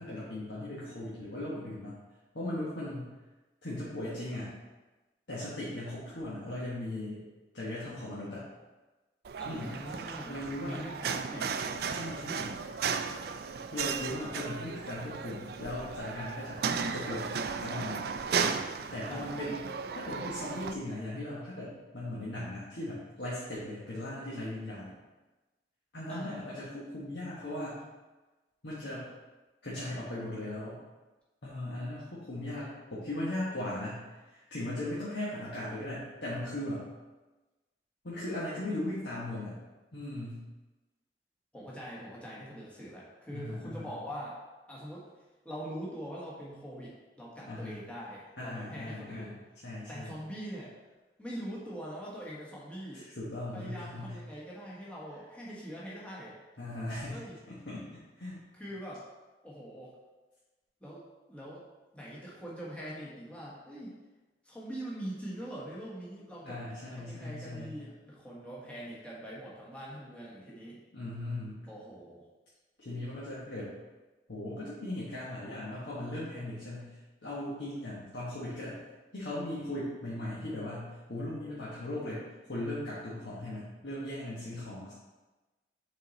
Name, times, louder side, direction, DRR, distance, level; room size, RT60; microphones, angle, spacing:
voice 1, 0.0-2.0 2.3-3.1 3.6-4.5 5.3-7.2 7.5-8.5 9.4-9.8 10.3-10.8 11.9-12.6 13.7-16.6 16.9-18.1 18.9-25.0 25.9-27.8 28.6-29.1 29.6-30.8 31.4-36.9 38.0-39.5 39.9-40.4 43.3-43.9 47.4-47.8 48.4-49.4 49.6-50.1 52.9-54.2 56.6-57.2 57.5-58.4 66.4-67.8 70.9-71.6 72.8-73.7 74.3-78.8 79.1-82.2 82.5-84.9, left 1 dB, 75° left, -8 dB, 1.3 m, -38 dB
sound 1, 9.2-20.7, right 6 dB, 60° right, 0.3 m, -35 dB
voice 2, 9.4-10.4 10.6-11.5 19.1-19.3 26.1-26.4 41.5-44.4 44.7-45.0 45.4-49.3 49.9-50.7 51.2-53.1 53.5-56.4 57.1-57.3 58.5-59.0 59.4-59.9 60.8-61.0 61.3-61.6 61.9-63.9 64.4-66.6 66.9-70.8 71.7-72.2, equal, 5° left, -7 dB, 1.4 m, -43 dB
6.3 x 4.1 x 4.0 m, 1.2 s
head